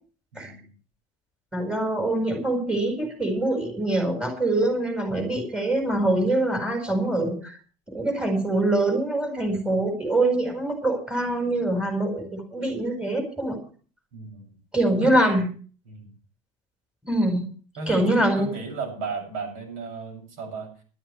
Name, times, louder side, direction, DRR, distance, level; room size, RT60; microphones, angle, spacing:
voice 1, 0.3-0.7 14.1-14.5 15.0-15.1 15.8-16.1 17.8-20.7, right 4 dB, 85° right, 4 dB, 7.0 m, -35 dB
voice 2, 1.5-7.6 7.9-13.6 14.7-15.4 17.0-17.5 17.9-18.5, right 1 dB, 5° right, 3 dB, 5.0 m, -24 dB
19.5 x 12.5 x 3.3 m, 0.40 s
supercardioid pair, 125°, 16 cm